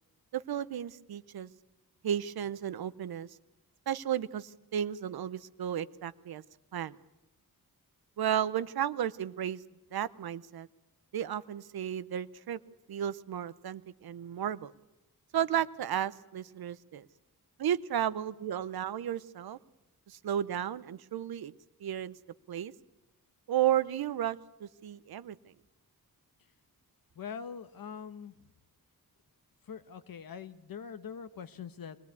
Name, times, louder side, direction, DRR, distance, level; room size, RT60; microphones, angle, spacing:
voice 1, 0.3-1.5 2.0-3.3 3.9-6.4 6.7-7.0 8.2-9.6 9.9-10.7 11.1-12.6 12.9-14.7 15.3-17.1 17.6-19.6 20.1-21.5 21.8-22.1 22.5-22.7 23.5-25.4, right 10 dB, 75° right, 16 dB, 0.8 m, -33 dB
voice 2, 27.1-28.5 29.7-32.0, left 7 dB, 65° left, 11 dB, 1.1 m, -43 dB
23.5 x 18.0 x 8.3 m, 1.0 s
wide cardioid pair, 120°, 37 cm